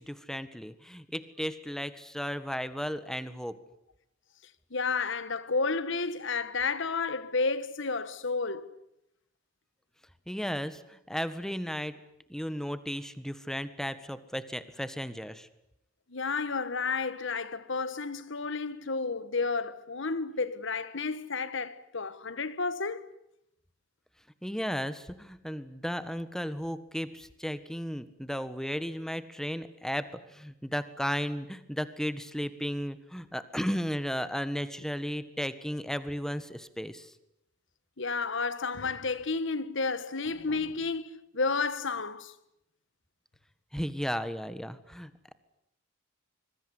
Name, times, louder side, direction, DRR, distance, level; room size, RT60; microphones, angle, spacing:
voice 1, 0.0-3.6 10.3-12.0 12.3-15.5 24.4-37.1 43.7-45.3, equal, 5° left, 1.6 m, -35 dB
voice 2, 4.7-8.7 16.1-23.1 38.0-42.3, left 4 dB, 70° left, 1.6 m, -31 dB
25.5 x 23.0 x 9.9 m
head